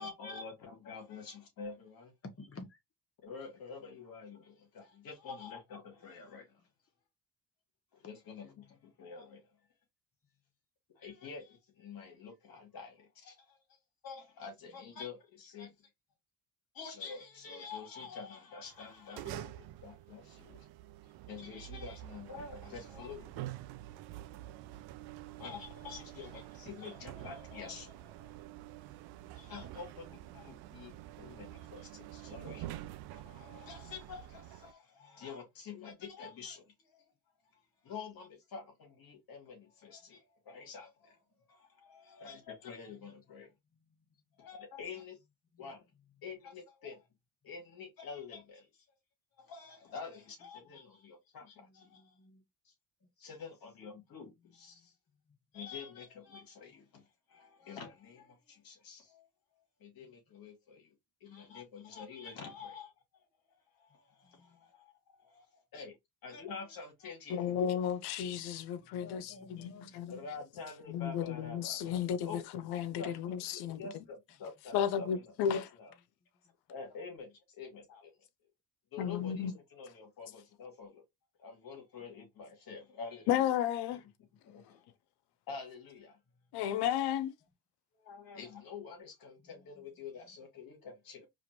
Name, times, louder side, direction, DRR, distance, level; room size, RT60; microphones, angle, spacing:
voice 1, 0.0-2.1 3.2-6.6 7.9-9.4 11.0-13.6 14.0-15.8 16.7-20.7 21.3-23.5 25.4-28.7 29.2-32.7 33.1-37.0 37.8-41.2 41.5-43.5 44.4-45.2 45.6-45.8 46.2-47.1 47.4-48.7 49.4-52.2 52.6-52.7 53.2-54.9 55.5-59.3 59.8-60.9 61.2-63.3 63.8-67.5 70.1-72.5 73.0-73.1 73.5-75.1 75.5-75.9 76.7-78.3 78.9-81.0 81.4-83.4 84.5-84.8 85.5-86.2 87.9-91.3, left 5 dB, 65° left, 2.6 m, -48 dB
voice 2, 2.2-2.8 24.2-24.9 28.5-28.6 43.7-44.0 45.5-45.7 51.6-52.4 53.2-53.3 54.2-54.9 55.3-55.4 64.2-64.7 68.8-70.1 76.4-76.5 86.3-86.5 89.6-89.7, left 2 dB, 35° left, 1.6 m, -55 dB
sound 1, 18.7-34.7, right 14 dB, 85° right, 0.6 m, -47 dB
voice 3, 67.3-70.1 70.9-74.0 74.7-75.6 79.0-79.5 83.3-84.0 86.5-87.3, left 9 dB, 85° left, 0.7 m, -33 dB
5.0 x 2.9 x 3.0 m
supercardioid pair, 75°, 38 cm